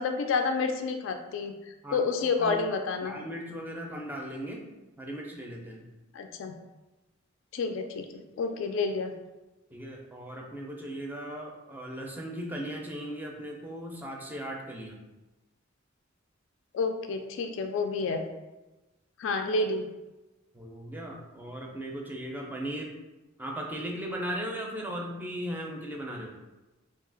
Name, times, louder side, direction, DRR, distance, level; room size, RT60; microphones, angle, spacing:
voice 1, 0.0-3.2 6.1-6.5 7.5-9.1 16.7-18.2 19.2-19.9, left 4 dB, 65° left, 6 dB, 0.3 m, -29 dB
voice 2, 3.0-4.6 5.0-5.9 9.7-15.0 20.5-22.9 23.4-26.3, equal, 10° right, 0 dB, 0.4 m, -37 dB
2.7 x 2.3 x 3.8 m, 1.1 s
head